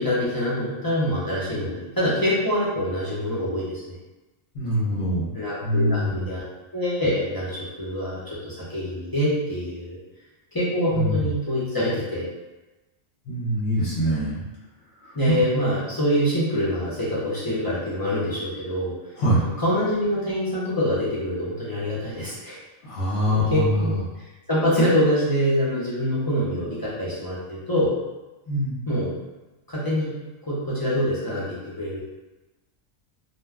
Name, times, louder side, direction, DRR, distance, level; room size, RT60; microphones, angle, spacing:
voice 1, 0.0-3.9 5.3-6.4 6.7-10.0 10.5-12.3 15.1-18.9 19.4-22.6 23.3-24.0 24.5-28.0 28.9-29.1 29.7-30.1 30.5-32.0, equal, 25° left, -9 dB, 0.4 m, -25 dB
voice 2, 4.5-5.3 5.6-6.3 10.9-11.2 13.3-14.4 15.0-15.4 19.2-19.4 22.8-24.0 28.5-28.8, equal, 50° left, -10 dB, 0.8 m, -24 dB
2.3 x 2.2 x 3.3 m, 1.1 s
omnidirectional pair, 1.3 m